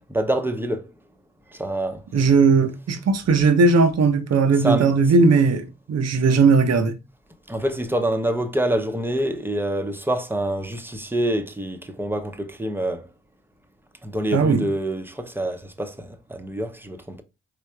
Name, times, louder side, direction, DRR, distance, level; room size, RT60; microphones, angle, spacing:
voice 1, 0.1-0.9 1.5-2.0 4.6-4.9 7.5-13.1 14.0-17.2, right 1 dB, 5° right, 0.8 m, -26 dB
voice 2, 2.1-6.9 14.3-14.6, right 4 dB, 55° right, 0.7 m, -18 dB
4.0 x 3.2 x 2.3 m
supercardioid pair, 40°, 31 cm